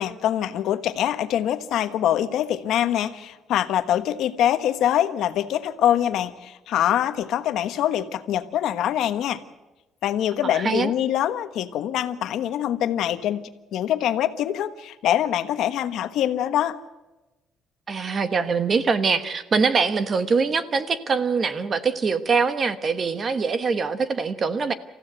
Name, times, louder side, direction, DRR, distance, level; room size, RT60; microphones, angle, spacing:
voice 1, 0.0-9.4 10.0-16.8, left 11 dB, 65° left, 10 dB, 1.2 m, -24 dB
voice 2, 10.4-10.9 17.9-24.7, right 5 dB, 30° right, 12 dB, 1.1 m, -23 dB
28.5 x 15.0 x 8.0 m, 1.1 s
cardioid pair, 175°, 0 cm